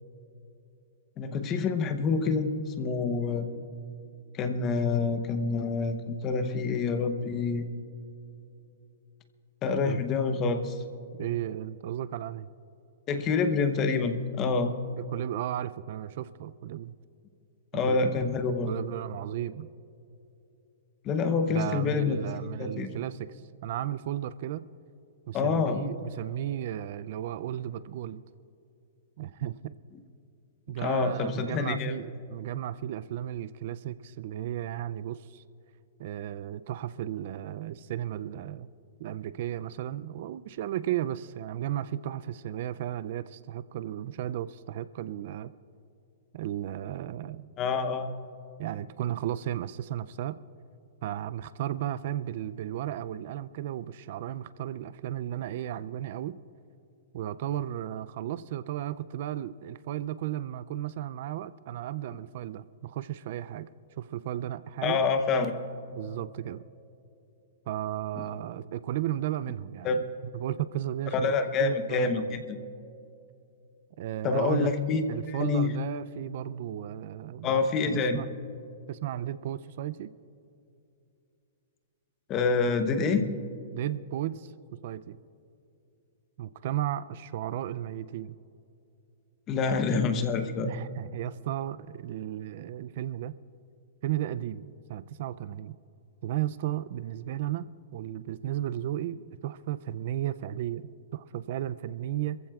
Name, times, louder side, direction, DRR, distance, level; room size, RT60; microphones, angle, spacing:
voice 1, 1.2-3.5 4.3-7.7 9.6-10.8 13.1-14.7 17.7-18.7 21.0-22.9 25.3-25.8 30.8-31.9 47.6-48.1 64.8-65.5 69.8-70.0 71.2-72.6 74.2-75.7 77.4-78.2 82.3-83.3 89.5-90.7, left 4 dB, 20° left, 8 dB, 0.8 m, -27 dB
voice 2, 11.2-12.5 15.0-17.0 17.7-18.1 18.7-19.7 21.5-24.7 25.3-28.2 29.2-29.7 30.7-35.4 36.0-38.7 39.0-45.5 46.3-47.5 48.6-50.4 51.0-56.4 57.1-63.7 64.0-65.0 65.9-66.6 67.7-70.0 70.3-72.4 74.0-74.7 75.1-77.6 77.9-78.3 78.9-80.1 83.7-84.5 84.8-85.2 86.4-88.4 90.6-93.3 94.0-95.8 96.2-102.4, right 12 dB, 45° right, 15 dB, 0.3 m, -34 dB
27.0 x 15.0 x 2.4 m, 2.7 s
hypercardioid pair, 165°, 0 cm